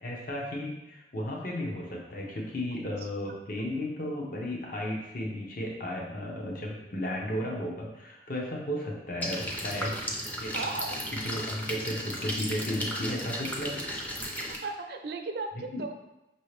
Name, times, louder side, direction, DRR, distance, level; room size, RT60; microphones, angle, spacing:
voice 1, 0.0-9.9 10.4-10.6 11.1-13.8 15.7-15.8, left 1 dB, 50° left, -1 dB, 0.7 m, -34 dB
sound 1, 9.2-14.6, equal, 10° left, 0.4 m, -35 dB
voice 2, 10.5-11.0 14.5-15.9, right 3 dB, 65° right, 5 dB, 0.4 m, -36 dB
5.6 x 2.7 x 3.1 m, 0.94 s
head